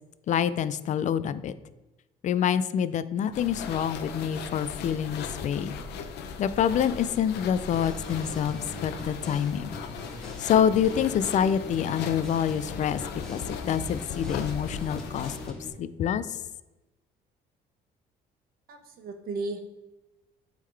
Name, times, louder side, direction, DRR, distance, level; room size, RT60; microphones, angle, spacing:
voice 1, 0.3-1.5 2.2-5.7 6.4-9.8 10.4-13.0 13.3-16.4, left 8 dB, 45° left, 14 dB, 0.4 m, -27 dB
sound 1, 3.3-15.5, left 6 dB, 80° left, 0.7 m, -38 dB
sound 2, 7.7-15.7, left 1 dB, 5° left, 1.3 m, -42 dB
voice 2, 18.7-19.6, right 3 dB, 60° right, 6 dB, 1.0 m, -34 dB
8.3 x 3.7 x 3.3 m, 1.0 s
cardioid pair, 110°, 17 cm